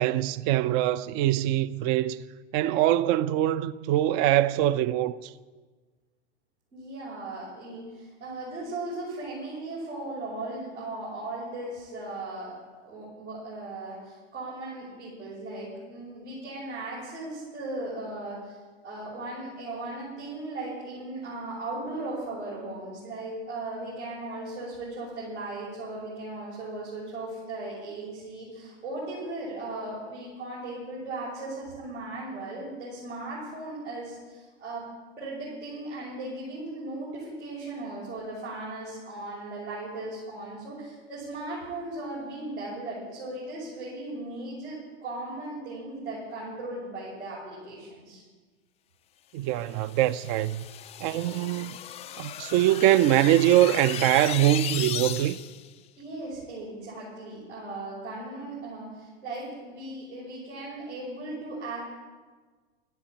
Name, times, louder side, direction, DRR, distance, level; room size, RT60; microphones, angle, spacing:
voice 1, 0.0-2.2 2.5-5.3 49.3-50.6 51.0-51.8 52.2-55.4, right 13 dB, 45° right, 0.6 m, -23 dB
voice 2, 6.7-18.6 18.8-34.9 35.2-48.2 56.0-61.8, right 2 dB, 85° right, 6.1 m, -37 dB
sound 1, 49.7-55.7, left 11 dB, 20° left, 0.4 m, -36 dB
13.0 x 10.5 x 8.7 m
hypercardioid pair, 95°, 34 cm